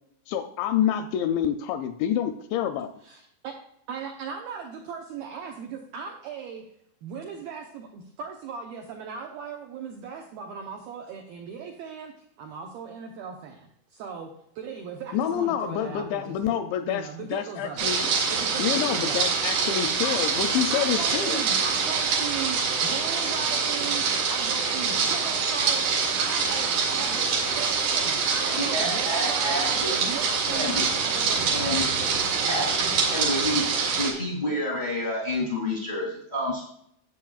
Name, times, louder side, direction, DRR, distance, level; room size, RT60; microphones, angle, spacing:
voice 1, 0.3-2.9 15.1-18.1 18.6-21.4, left 10 dB, 85° left, 8 dB, 2.6 m, -27 dB
voice 2, 3.0-3.6 3.9-6.7 7.0-12.1 12.4-17.9 18.3-19.3 19.9-20.2 20.7-31.7 32.4-33.2, right 6 dB, 85° right, 2 dB, 2.1 m, -38 dB
sound 1, 17.8-34.1, right 5 dB, 70° right, 4.0 m, -25 dB
voice 3, 28.4-29.9 30.5-30.9 31.5-31.9 32.5-33.6 34.0-36.7, left 1 dB, 35° left, -3 dB, 0.6 m, -29 dB
13.0 x 7.8 x 2.3 m, 0.72 s
omnidirectional pair, 5.4 m